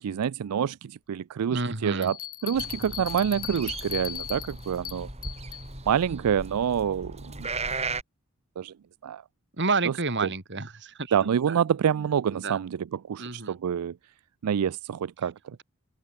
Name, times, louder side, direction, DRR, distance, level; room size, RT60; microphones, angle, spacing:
voice 1, 0.0-2.2 2.4-5.1 5.9-7.5 8.6-8.7 9.0-9.2 9.9-10.0 10.2-10.3 11.1-14.0 14.4-15.6, right 8 dB, 85° right, 0.4 m, -27 dB
voice 2, 1.5-2.1 9.6-11.6 12.3-12.6 13.2-13.6, right 3 dB, 50° right, 2.8 m, -30 dB
Bell, 2.0-5.7, left 10 dB, 40° left, 2.2 m, -38 dB
sound 1, 2.5-8.0, right 3 dB, 30° right, 4.4 m, -37 dB
open air
head